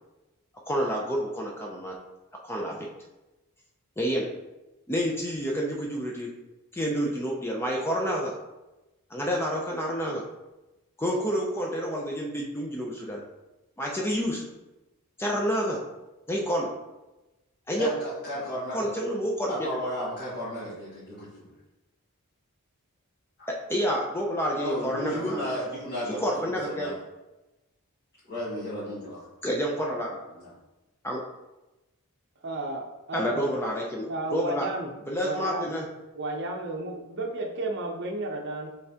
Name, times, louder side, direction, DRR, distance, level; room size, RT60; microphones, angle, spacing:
voice 1, 0.7-1.9 2.4-2.9 4.0-4.3 4.9-6.3 6.7-8.3 9.1-10.2 11.0-13.2 13.8-14.4 15.2-15.8 16.3-16.7 17.7-17.9 18.7-19.8 23.5-25.5 26.2-26.9 29.4-30.1 31.0-31.2 33.1-34.7 35.1-35.9, equal, 10° left, -1 dB, 0.4 m, -29 dB
voice 2, 17.8-18.9 19.5-21.3 24.6-26.9 28.3-29.2 30.4-30.5, equal, 50° left, -12 dB, 1.5 m, -33 dB
voice 3, 32.4-33.5 34.1-34.9 35.2-35.7 36.1-38.7, right 2 dB, 50° right, 2 dB, 0.6 m, -33 dB
5.7 x 3.2 x 2.8 m, 1.0 s
head